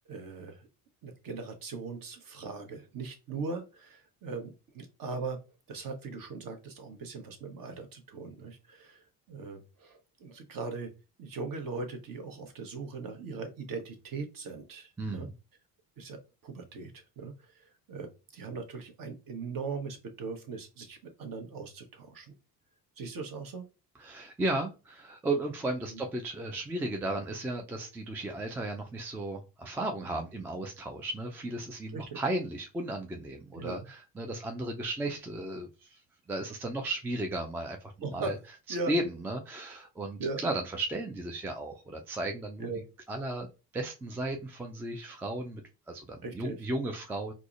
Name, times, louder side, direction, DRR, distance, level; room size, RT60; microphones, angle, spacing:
voice 1, 0.1-0.7 1.0-5.4 5.7-10.9 11.2-15.3 16.0-22.3 23.0-23.7 25.9-26.0 31.9-32.2 33.5-33.9 38.0-38.4 38.7-38.9 40.2-40.4 42.6-42.8 46.2-46.6, right 4 dB, 45° right, 6 dB, 0.9 m, -39 dB
voice 2, 15.0-15.3 24.0-36.0 36.3-38.4 38.9-42.7 43.1-45.6 45.9-47.3, right 2 dB, 5° right, 3 dB, 0.3 m, -35 dB
4.7 x 2.0 x 2.4 m, 0.30 s
hypercardioid pair, 55°, 48 cm